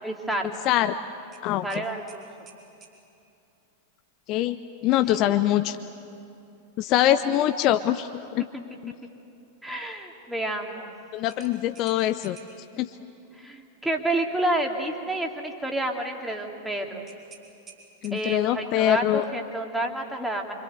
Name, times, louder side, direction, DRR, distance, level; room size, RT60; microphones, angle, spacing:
voice 1, 0.0-0.5 1.6-2.5 5.1-5.2 8.7-8.8 9.6-10.9 13.3-17.1 18.1-20.5, right 1 dB, 5° right, 1 dB, 2.7 m, -29 dB
voice 2, 0.7-1.0 1.4-1.8 4.3-4.6 4.8-5.8 6.8-8.4 8.8-8.9 11.1-12.4 12.8-12.9 18.0-19.2, left 12 dB, 40° left, 10 dB, 0.7 m, -23 dB
sound 1, 1.3-3.0 5.6-5.8 6.3-6.4 11.3-12.7 17.1-18.5, right 5 dB, 30° right, 4.8 m, -51 dB
26.0 x 25.5 x 8.0 m, 2.7 s
figure-of-eight pair, 90°, 0 cm